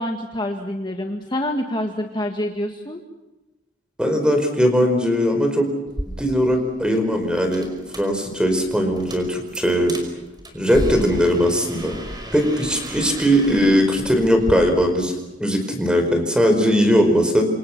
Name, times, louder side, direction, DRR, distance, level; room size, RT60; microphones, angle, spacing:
voice 1, 0.0-3.0, left 1 dB, 25° left, 3 dB, 1.8 m, -26 dB
voice 2, 4.0-5.7 6.2-7.7 7.9-10.0 10.5-12.0 12.3-15.1 15.4-17.4, equal, 5° right, 5 dB, 4.9 m, -19 dB
sound 1, 5.9-14.5, right 1 dB, 20° right, 5.3 m, -34 dB
27.5 x 27.5 x 6.0 m, 1.1 s
head